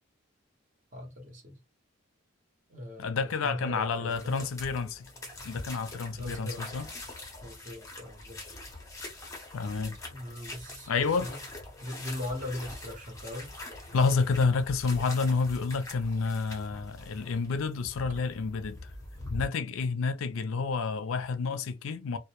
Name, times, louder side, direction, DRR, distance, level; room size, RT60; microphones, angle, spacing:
voice 1, 0.9-1.6 2.7-3.2 3.4-4.5 6.2-6.7 7.4-8.4 10.1-11.4 11.8-13.5 18.1-18.2, left 1 dB, 40° right, 0.9 m, -39 dB
voice 2, 3.0-5.0 5.4-6.9 9.5-10.0 10.9-11.3 13.9-18.9 19.3-22.2, left 4 dB, 80° left, 0.4 m, -29 dB
sound 1, 4.1-19.5, left 2 dB, 15° left, 0.7 m, -44 dB
2.2 x 2.1 x 2.9 m
head